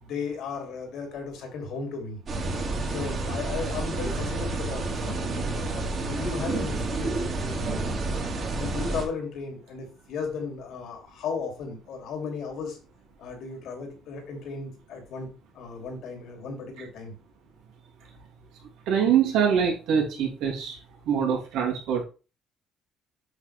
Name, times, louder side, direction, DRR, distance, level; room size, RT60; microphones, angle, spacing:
voice 1, 0.0-2.2 2.8-7.7 8.1-12.8 13.2-15.3 15.5-17.1, left 5 dB, 75° left, 2 dB, 3.1 m, -35 dB
sound 1, 2.3-9.0, right 2 dB, 40° right, 2.5 m, -29 dB
voice 2, 18.9-20.8 21.0-22.0, right 7 dB, 85° right, -1 dB, 3.0 m, -24 dB
8.0 x 6.0 x 3.6 m, 0.33 s
cardioid pair, 115°, 0 cm